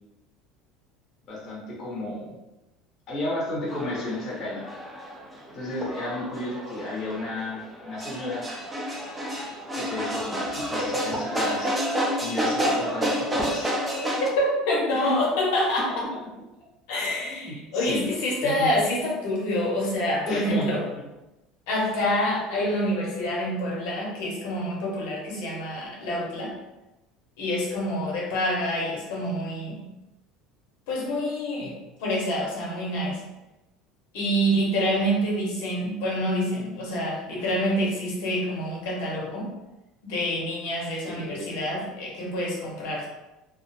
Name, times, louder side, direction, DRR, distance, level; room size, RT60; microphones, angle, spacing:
voice 1, 1.3-2.3 3.1-4.6 5.5-8.5 9.8-11.7 12.2-14.0 14.9-15.1 15.9-16.2 17.2-18.1 18.4-18.7 20.3-20.7 21.0-21.1 41.0-41.5, left 1 dB, 30° left, -5 dB, 0.7 m, -33 dB
sound 1, 3.7-14.3, equal, 10° right, 0.3 m, -29 dB
voice 2, 14.2-15.9 16.9-20.8 21.7-26.5 27.4-29.8 30.9-33.2 34.1-39.5 40.0-43.0, equal, 70° left, -3 dB, 0.7 m, -27 dB
2.3 x 2.0 x 2.6 m, 0.98 s
cardioid pair, 180°, 0 cm